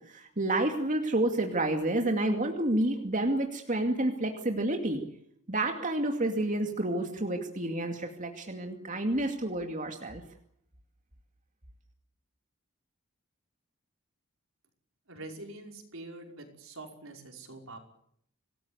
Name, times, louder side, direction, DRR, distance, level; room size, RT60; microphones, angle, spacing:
voice 1, 0.1-5.0 5.5-10.2, right 1 dB, 35° right, 4 dB, 2.5 m, -29 dB
voice 2, 15.1-17.8, right 2 dB, 70° right, 3 dB, 5.4 m, -45 dB
27.0 x 19.0 x 8.1 m, 0.70 s
head